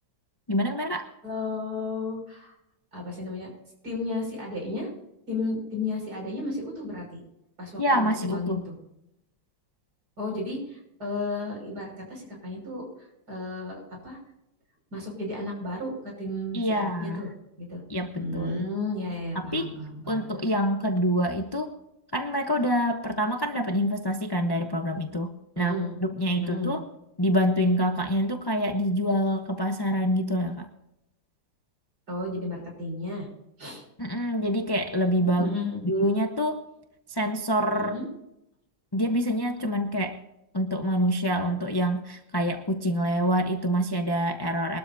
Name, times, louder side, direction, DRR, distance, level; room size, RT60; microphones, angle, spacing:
voice 1, 0.5-1.1 7.8-8.7 16.5-17.2 17.9-18.6 19.3-19.7 20.1-21.7 22.1-25.7 26.0-26.8 27.2-30.7 34.0-35.6 35.8-36.6 37.1-37.9 38.9-40.2 40.5-44.8, equal, 25° left, 5 dB, 0.5 m, -26 dB
voice 2, 1.2-2.5 2.9-3.5 3.8-4.9 5.3-7.2 7.6-8.8 10.2-14.2 14.9-17.3 17.6-17.8 18.1-20.2 25.5-25.9 26.4-26.7 32.1-33.3 33.6-33.8 35.4-35.8 37.7-38.1, left 2 dB, 50° right, 0 dB, 6.4 m, -33 dB
22.5 x 13.0 x 2.8 m, 0.86 s
omnidirectional pair, 2.1 m